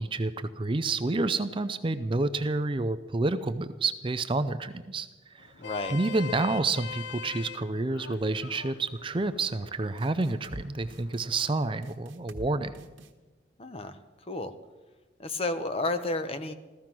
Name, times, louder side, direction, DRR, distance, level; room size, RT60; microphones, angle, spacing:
voice 1, 0.0-5.1 5.3-5.5 5.9-12.9, right 3 dB, 25° right, 11 dB, 0.5 m, -29 dB
Vehicle horn car horn honking, 5.4-11.8, left 6 dB, 65° left, 0.4 m, -43 dB
voice 2, 5.6-6.0 13.6-14.5 15.2-16.5, left 2 dB, 30° left, 10 dB, 0.9 m, -32 dB
sound 1, 10.0-10.6 10.9-11.3 11.8-12.5 12.7-13.1, right 1 dB, 85° right, 1.4 m, -44 dB
15.0 x 14.0 x 6.0 m, 1.2 s
head